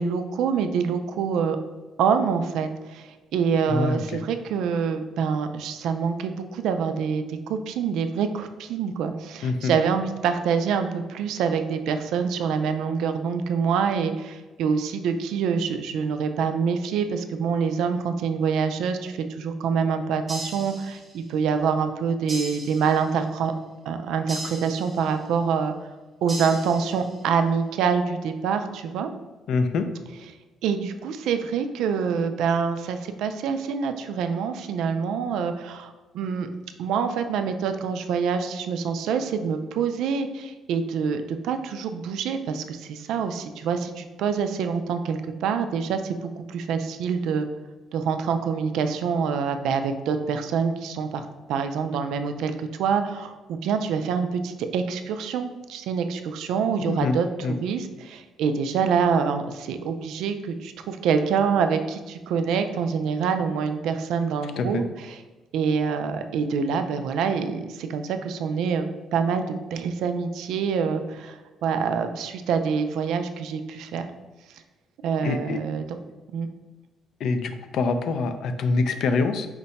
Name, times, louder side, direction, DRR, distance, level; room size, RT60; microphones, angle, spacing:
voice 1, 0.0-1.6 2.0-23.5 23.9-25.7 26.2-29.1 30.6-36.5 36.8-47.5 47.9-65.2 65.5-68.8 69.1-74.1 75.0-76.0 76.3-76.5, right 6 dB, 75° right, 8 dB, 0.3 m, -26 dB
voice 2, 3.7-4.2 9.4-9.7 29.5-29.9 56.9-57.2 57.4-57.5 64.6-64.8 75.2-75.6 77.2-79.5, left 4 dB, 55° left, 8 dB, 0.3 m, -25 dB
sound 1, 20.3-21.3 22.3-23.3 24.3-25.3 26.3-27.3, right 1 dB, 10° right, 0.8 m, -38 dB
4.6 x 2.2 x 4.0 m, 1.2 s
cardioid pair, 180°, 0 cm